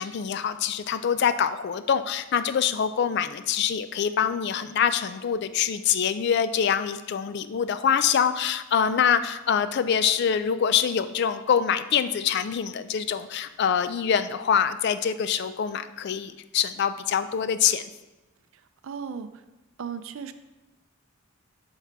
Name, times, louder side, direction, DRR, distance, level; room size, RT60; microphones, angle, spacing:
voice 1, 0.0-17.8, left 7 dB, 50° left, 12 dB, 0.3 m, -25 dB
voice 2, 18.5-19.4 19.8-20.3, right 6 dB, 70° right, 11 dB, 0.4 m, -36 dB
5.7 x 5.6 x 4.6 m, 1.1 s
head